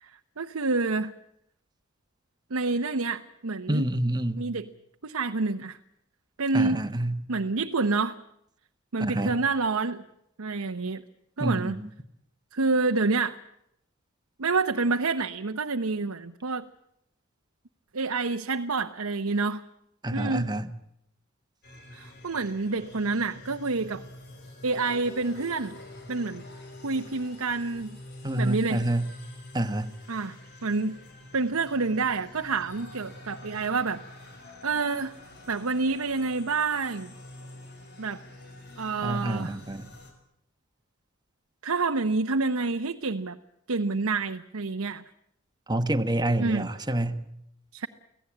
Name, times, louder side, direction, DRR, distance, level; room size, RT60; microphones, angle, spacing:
voice 1, 0.0-1.1 2.5-3.9 4.4-4.7 5.0-5.8 6.4-6.8 7.3-8.2 8.9-10.0 10.4-11.0 11.4-11.8 12.5-13.4 14.4-16.6 17.9-19.6 20.1-20.5 21.9-24.0 24.6-25.8 26.1-26.4 26.8-28.0 28.4-28.8 30.1-30.4 30.6-31.0 31.3-34.0 34.6-35.1 35.5-37.1 38.0-38.2 38.8-39.6 41.6-43.4 43.7-45.0 46.4-46.7 47.7-47.9, right 3 dB, 80° right, 0.9 m, -28 dB
voice 2, 3.7-4.4 6.5-7.2 9.0-9.4 11.4-11.8 20.0-20.7 28.2-29.1 29.5-29.9 39.0-39.9 45.7-47.2, right 1 dB, 20° right, 1.3 m, -27 dB
sound 1, 21.6-40.1, left 1 dB, 50° left, 5.6 m, -47 dB
25.5 x 17.0 x 8.6 m
head